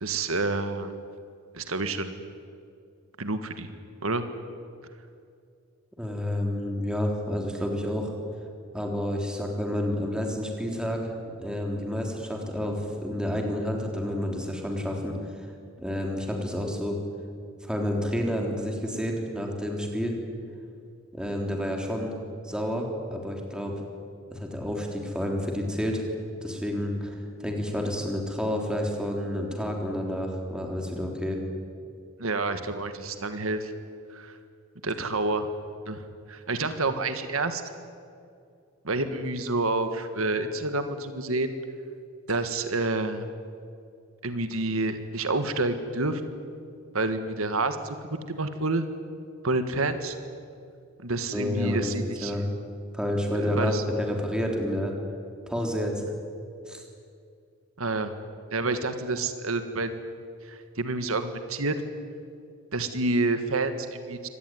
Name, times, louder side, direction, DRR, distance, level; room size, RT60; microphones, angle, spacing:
voice 1, 0.0-0.9 1.5-2.1 3.2-3.7 4.0-4.2 32.2-33.7 34.1-34.4 34.8-35.5 35.9-36.0 36.3-37.6 38.8-41.5 42.3-43.3 44.2-46.2 46.9-48.0 48.3-48.8 49.4-50.2 51.0-52.3 53.5-53.8 57.8-58.1 58.5-59.9 60.4-61.8 62.7-64.3, right 2 dB, 80° right, 9 dB, 1.6 m, -28 dB
voice 2, 6.0-8.1 8.7-11.1 11.4-15.2 15.8-17.0 17.6-20.2 21.1-22.2 22.4-23.8 24.3-26.0 26.4-31.4 51.3-51.9 52.2-52.4 52.9-54.9 55.5-56.0 56.7-56.8, left 1 dB, 5° right, 1 dB, 3.6 m, -29 dB
24.5 x 19.0 x 9.5 m, 2.4 s
head